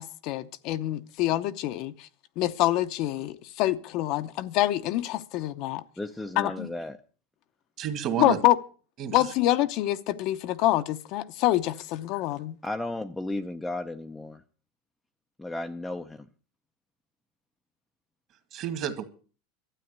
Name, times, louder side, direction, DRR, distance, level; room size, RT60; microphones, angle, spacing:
voice 1, 0.0-2.1 2.4-5.8 6.4-6.7 8.2-8.5 9.1-12.6, left 15 dB, 45° left, 0.7 m, -26 dB
voice 2, 6.0-7.0 12.6-14.4 15.4-16.3, left 2 dB, 5° left, 0.6 m, -34 dB
voice 3, 7.8-8.4 9.0-9.3 18.5-19.0, right 9 dB, 40° right, 2.1 m, -31 dB
12.5 x 9.3 x 8.0 m
supercardioid pair, 160°, 0 cm